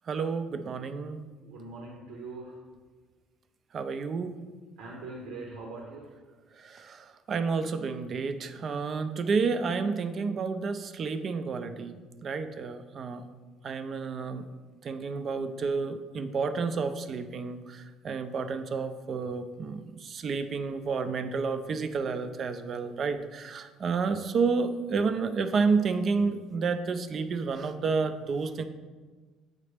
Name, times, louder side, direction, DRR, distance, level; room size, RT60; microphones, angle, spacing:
voice 1, 0.1-1.2 3.7-4.4 6.6-12.0 12.2-13.2 13.6-14.5 14.8-28.7, right 4 dB, 40° right, 9 dB, 0.4 m, -30 dB
voice 2, 1.4-2.6 4.8-6.1, right 3 dB, 85° right, -1 dB, 1.0 m, -42 dB
8.5 x 4.0 x 3.4 m, 1.4 s
cardioid pair, 145°, 0 cm